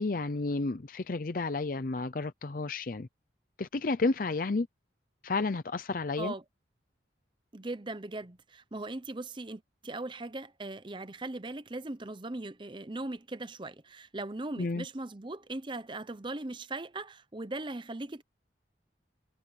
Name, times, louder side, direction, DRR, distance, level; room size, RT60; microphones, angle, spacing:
voice 1, 0.0-3.1 3.6-4.7 5.2-6.3 14.6-14.8, left 3 dB, 45° left, 0.6 m, -31 dB
voice 2, 7.5-18.2, right 2 dB, 25° right, 0.7 m, -39 dB
head